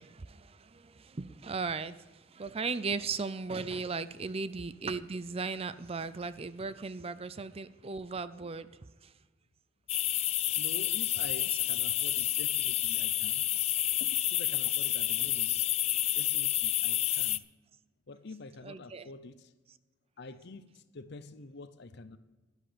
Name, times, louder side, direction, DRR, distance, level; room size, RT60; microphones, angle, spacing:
voice 1, 0.0-2.0 2.3-8.7 18.6-19.1, right 4 dB, 30° right, 0.5 m, -37 dB
sound 1, 9.9-17.4, left 13 dB, 35° left, 0.3 m, -29 dB
voice 2, 10.6-13.5 14.3-15.7 16.1-17.5 18.1-19.5 20.2-22.2, left 3 dB, 60° left, 0.7 m, -47 dB
11.5 x 11.0 x 5.1 m
head